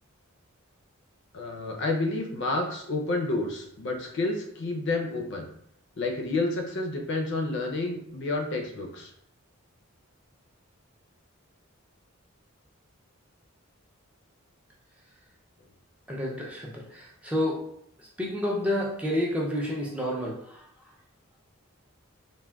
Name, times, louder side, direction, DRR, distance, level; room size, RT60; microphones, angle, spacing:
voice 1, 1.3-5.5 6.0-9.1, left 2 dB, 55° left, 1 dB, 0.4 m, -30 dB
voice 2, 16.1-17.7 18.0-20.7, left 1 dB, 5° right, -3 dB, 0.3 m, -30 dB
3.4 x 2.1 x 2.2 m, 0.71 s
head